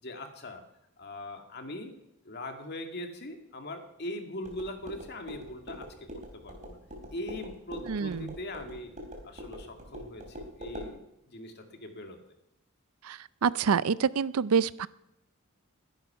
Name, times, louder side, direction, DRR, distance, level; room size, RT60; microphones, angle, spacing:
voice 1, 0.0-0.6 1.0-1.9 2.2-6.8 7.1-8.9 9.2-11.0 11.3-12.2, left 1 dB, 50° left, 5 dB, 2.2 m, -41 dB
sound 1, 4.4-10.9, equal, 35° right, 3.4 m, -44 dB
voice 2, 7.9-8.3 13.0-14.9, right 6 dB, 90° right, 19 dB, 0.5 m, -27 dB
20.5 x 10.5 x 5.8 m, 0.84 s
head